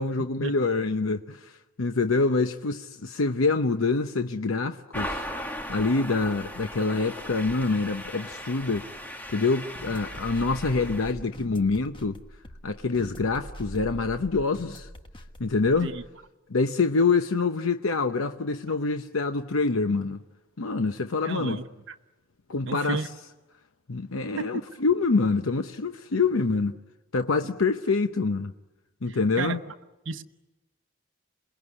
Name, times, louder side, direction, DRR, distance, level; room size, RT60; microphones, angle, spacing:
voice 1, 0.0-1.5 1.8-5.3 5.7-8.9 9.3-12.2 12.6-14.9 15.4-15.9 16.5-20.2 20.6-21.6 22.5-23.0 23.9-26.8 27.1-28.5 29.0-29.6, left 3 dB, 80° left, 0.8 m, -26 dB
sound 1, 4.9-11.1, equal, 10° left, 1.7 m, -38 dB
sound 2, 9.7-16.1, equal, 25° left, 1.4 m, -42 dB
voice 2, 21.2-21.9 22.7-23.1 24.4-24.6 29.1-29.6 30.0-30.2, right 3 dB, 65° right, 1.1 m, -33 dB
27.5 x 20.5 x 9.8 m
head